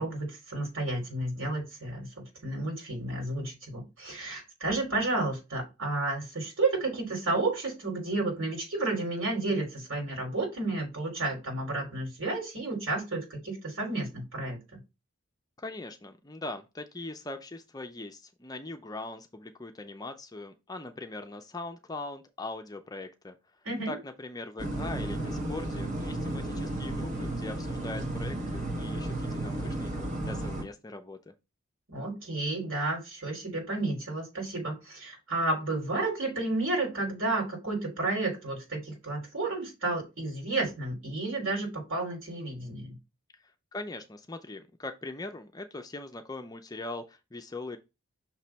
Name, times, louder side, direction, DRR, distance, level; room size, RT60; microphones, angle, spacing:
voice 1, 0.0-14.8 23.6-23.9 31.9-43.0, right 2 dB, 70° right, 3.3 m, -31 dB
voice 2, 15.6-23.4 23.9-31.3 43.7-47.8, left 2 dB, 15° left, 0.5 m, -41 dB
sound 1, 24.6-30.6, right 1 dB, 35° right, 1.2 m, -33 dB
6.0 x 3.1 x 5.6 m
head